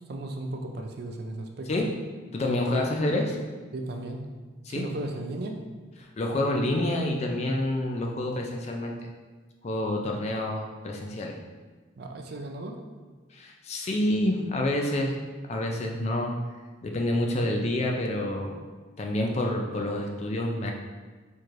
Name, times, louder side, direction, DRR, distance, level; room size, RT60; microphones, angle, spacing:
voice 1, 0.1-1.8 2.7-3.0 3.7-4.3 4.7-5.6 10.1-10.4 12.0-12.9, right 2 dB, 50° right, 3 dB, 0.4 m, -36 dB
voice 2, 2.3-3.2 4.7-4.9 6.2-8.9 9.6-11.3 13.3-15.2 15.5-16.3 16.8-18.6 19.0-20.7, left 1 dB, 30° left, 1 dB, 0.3 m, -28 dB
4.4 x 3.1 x 2.5 m, 1.4 s
head